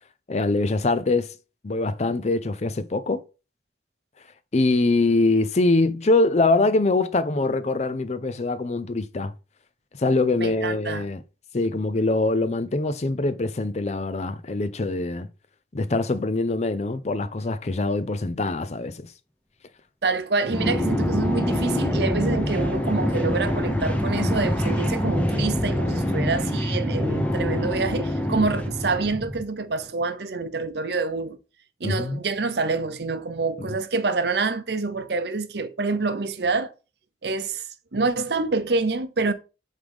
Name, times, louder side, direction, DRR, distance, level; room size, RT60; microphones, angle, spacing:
voice 1, 0.3-1.3 1.6-3.2 4.5-9.3 10.0-11.2 11.5-15.3 15.7-19.1 31.8-32.2 33.6-33.7, left 2 dB, 40° left, 0.5 m, -23 dB
voice 2, 10.4-11.1 20.0-31.4 31.8-36.7 37.2-39.3, right 3 dB, 65° right, 0.7 m, -26 dB
sound 1, 20.5-29.4, left 1 dB, 10° left, 0.8 m, -25 dB
8.1 x 3.8 x 3.6 m
head